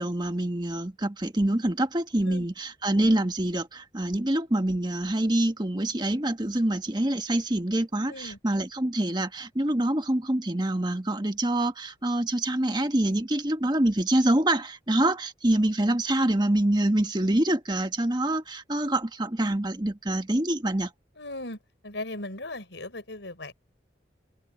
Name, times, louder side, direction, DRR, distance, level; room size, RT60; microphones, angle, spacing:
voice 1, 0.0-20.9, right 1 dB, 25° right, 1.4 m, -26 dB
voice 2, 8.1-8.4 21.2-21.6 21.8-23.5, left 2 dB, 90° left, 5.5 m, -37 dB
open air
head